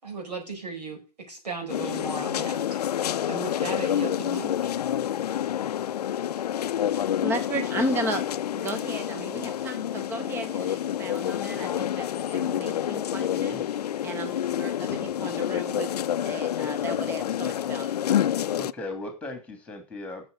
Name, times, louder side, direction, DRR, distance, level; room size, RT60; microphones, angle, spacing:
voice 1, 0.0-4.7, right 4 dB, 85° right, 3 dB, 4.8 m, -37 dB
sound 1, 1.7-18.7, left 10 dB, 75° left, 0.5 m, -28 dB
voice 2, 6.9-13.6 14.0-15.9 16.2-18.0, right 1 dB, 10° right, 9 dB, 0.8 m, -34 dB
voice 3, 13.2-13.7 18.6-20.3, left 2 dB, 5° left, 6 dB, 2.7 m, -38 dB
7.5 x 6.6 x 6.7 m, 0.31 s
hypercardioid pair, 140°, 20 cm